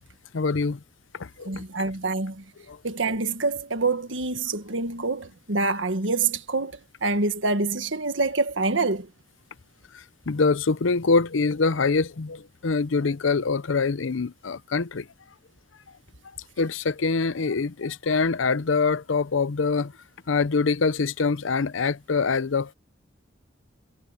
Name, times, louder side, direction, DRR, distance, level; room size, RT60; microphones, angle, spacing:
voice 1, 0.3-0.8 1.2-1.6 2.7-2.8 10.3-15.0 16.6-19.9 20.3-22.7, left 4 dB, 85° left, 0.7 m, -24 dB
voice 2, 1.5-2.3 2.8-6.7 7.0-9.0, right 3 dB, 75° right, 1.7 m, -26 dB
head